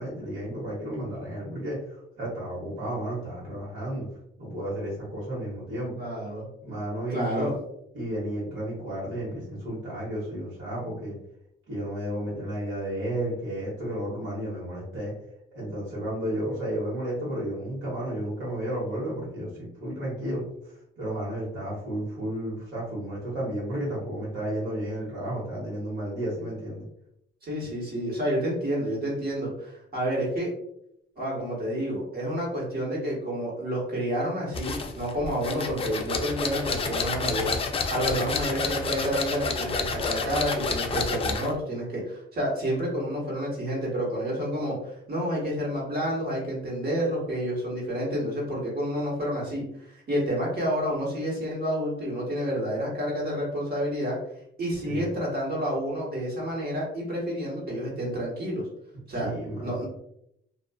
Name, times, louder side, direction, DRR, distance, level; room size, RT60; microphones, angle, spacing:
voice 1, 0.0-4.1 4.4-5.9 6.6-7.5 7.9-11.1 11.7-15.1 15.5-26.8 54.8-55.1 59.2-59.9, right 1 dB, 70° right, -8 dB, 1.1 m, -32 dB
voice 2, 6.0-6.5 7.1-7.5 27.4-30.5 31.2-54.2 54.6-58.6 59.1-59.3 59.6-59.9, equal, 50° right, -4 dB, 1.3 m, -29 dB
sound 1, 34.5-41.5, left 4 dB, 30° left, 0.4 m, -30 dB
2.4 x 2.3 x 2.2 m, 0.76 s
cardioid pair, 90°, 20 cm